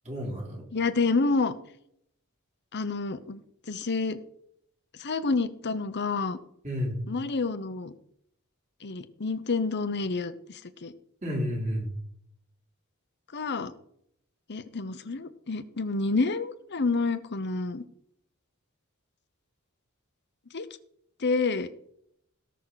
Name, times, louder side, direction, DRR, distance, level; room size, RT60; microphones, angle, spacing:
voice 1, 0.1-0.6 6.6-7.0 11.2-11.9, equal, 35° right, -1 dB, 3.7 m, -31 dB
voice 2, 0.7-1.5 2.7-3.4 3.7-4.2 5.0-6.4 7.1-7.9 8.8-10.9 13.3-13.7 14.5-17.8 20.5-20.7 21.2-21.7, left 3 dB, 50° left, 12 dB, 0.9 m, -28 dB
18.0 x 6.2 x 4.1 m, 0.71 s
head